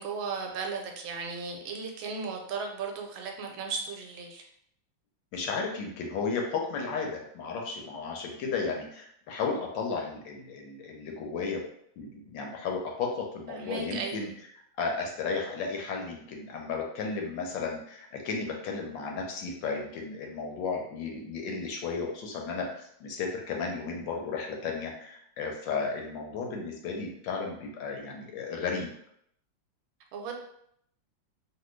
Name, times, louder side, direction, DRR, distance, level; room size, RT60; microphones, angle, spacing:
voice 1, 0.0-4.4 13.5-14.2 30.1-30.3, right 4 dB, 85° right, 2 dB, 1.4 m, -36 dB
voice 2, 5.3-11.6 12.0-14.3 14.8-28.9, left 4 dB, 75° left, 1 dB, 1.3 m, -34 dB
3.3 x 2.5 x 3.1 m, 0.70 s
omnidirectional pair, 2.1 m